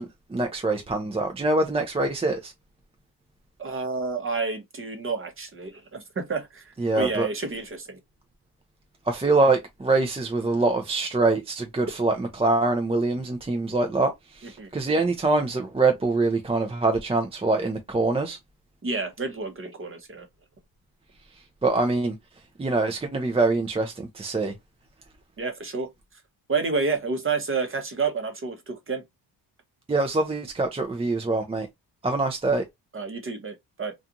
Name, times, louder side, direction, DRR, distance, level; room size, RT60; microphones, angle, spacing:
voice 1, 0.0-2.5 6.8-7.3 9.1-18.4 21.6-22.2 22.6-24.5 29.9-31.7 32.0-32.6, right 3 dB, 15° right, 0.5 m, -24 dB
voice 2, 3.6-8.0 14.4-14.7 18.8-20.3 25.4-25.9 26.5-29.0 32.9-33.9, right 4 dB, 30° right, 0.8 m, -30 dB
2.5 x 2.4 x 2.7 m
cardioid pair, 80°, 42 cm